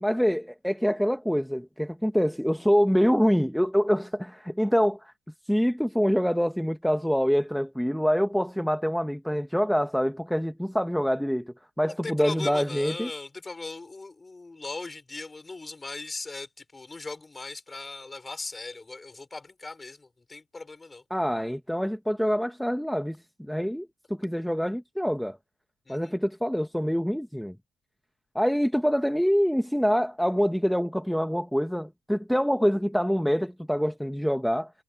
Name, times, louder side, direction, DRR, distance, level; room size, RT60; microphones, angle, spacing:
voice 1, 0.0-5.1 5.5-13.1 21.1-25.4 25.9-27.5 28.3-34.7, equal, ahead, 1.3 m, -25 dB
voice 2, 11.8-21.0 25.8-26.1, left 3 dB, 20° left, 4.9 m, -39 dB
supercardioid pair, 80°, 0 cm